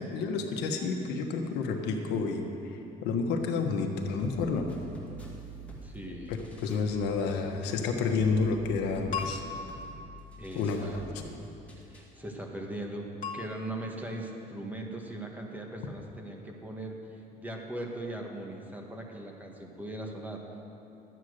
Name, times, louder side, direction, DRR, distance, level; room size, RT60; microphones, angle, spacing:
voice 1, 0.0-2.4 3.0-4.6 6.3-6.4 6.6-9.4 10.5-11.1, left 4 dB, 90° left, 3 dB, 1.3 m, -29 dB
sound 1, 4.2-12.2, right 2 dB, 10° left, 2.3 m, -47 dB
voice 2, 5.8-6.4 10.4-11.0 11.8-13.1 13.3-20.4, right 1 dB, 10° right, 1 dB, 1.6 m, -39 dB
sound 2, 9.1-10.7 13.2-13.4, left 5 dB, 55° left, 1.4 m, -38 dB
12.5 x 8.9 x 6.5 m, 2.9 s
cardioid pair, 110°, 17 cm